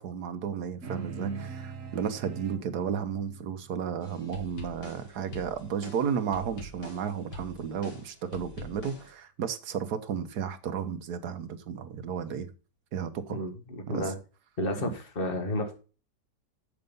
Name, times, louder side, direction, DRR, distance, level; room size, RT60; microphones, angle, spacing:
voice 1, 0.0-12.5 12.9-13.5 13.9-14.1 14.8-14.9, right 7 dB, 70° right, 1.5 m, -33 dB
sound 1, 0.8-5.6, right 5 dB, 50° right, 1.7 m, -42 dB
sound 2, 4.0-9.1, left 2 dB, 90° left, 2.8 m, -44 dB
voice 2, 13.3-14.2 14.6-15.7, left 1 dB, 35° left, 1.8 m, -31 dB
7.9 x 6.7 x 5.4 m
omnidirectional pair, 1.8 m